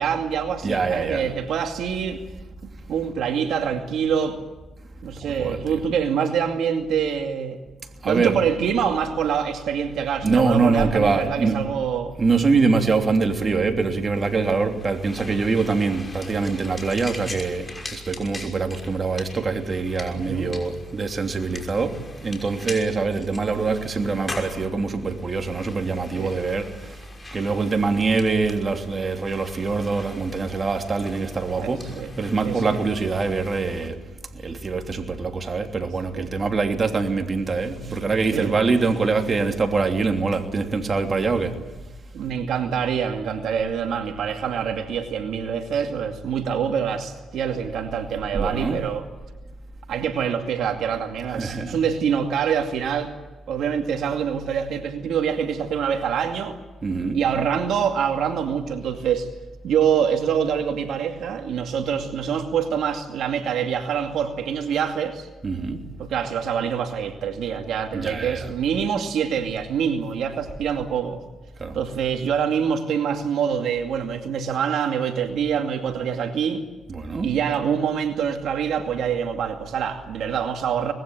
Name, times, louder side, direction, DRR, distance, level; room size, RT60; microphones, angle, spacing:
voice 1, 0.0-2.2 2.9-4.4 5.0-7.6 8.0-12.1 20.1-20.6 26.2-26.3 31.6-32.1 32.4-32.8 36.1-36.3 38.3-38.5 42.1-49.0 49.9-53.1 53.5-56.6 57.1-59.3 59.6-65.3 66.0-71.2 71.7-76.6 77.2-80.9, right 7 dB, 70° right, 2.4 m, -25 dB
voice 2, 0.6-1.2 5.2-5.8 8.0-8.4 10.2-11.6 12.2-27.0 27.3-34.0 34.3-41.6 48.3-48.8 51.3-51.8 56.8-57.2 65.4-65.8 67.9-68.5 71.6-71.8 76.9-77.3, right 4 dB, 35° right, 3.1 m, -24 dB
sound 1, 14.1-33.9, left 2 dB, 15° left, 5.9 m, -42 dB
25.0 x 20.5 x 9.1 m
cardioid pair, 90°, 0 cm